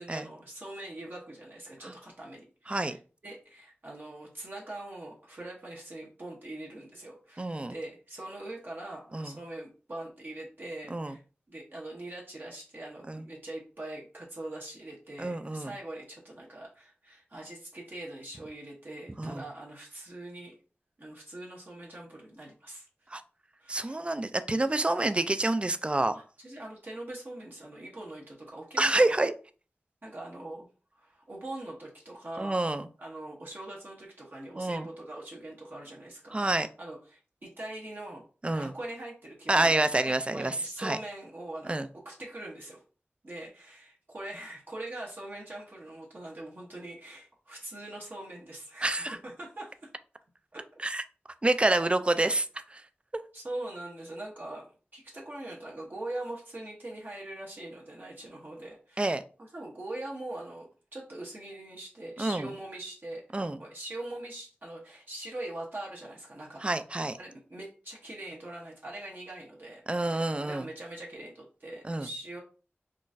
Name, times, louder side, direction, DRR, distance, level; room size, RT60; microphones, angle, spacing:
voice 1, 0.0-11.2 11.5-20.5 21.0-23.1 23.6-24.0 26.1-29.2 30.0-30.7 30.9-32.6 33.0-41.8 42.0-42.8 43.2-49.9 50.5-50.6 53.3-54.7 54.9-59.1 59.4-63.2 63.6-66.6 67.2-72.4, right 1 dB, 50° right, -3 dB, 0.8 m, -42 dB
voice 2, 7.4-7.7 9.1-9.3 10.9-11.1 13.1-13.2 15.2-15.7 19.2-19.4 23.1-23.2 23.7-26.1 28.8-29.3 32.4-32.9 34.6-34.9 36.3-36.7 38.4-38.7 39.5-41.0 41.7-41.9 48.8-49.2 50.8-51.0 51.4-52.8 59.0-59.2 62.2-62.5 63.3-63.6 66.6-67.2 69.9-70.7 71.8-72.1, right 2 dB, 25° right, 11 dB, 0.3 m, -28 dB
3.7 x 2.4 x 2.6 m, 0.37 s
wide cardioid pair, 60°, 4 cm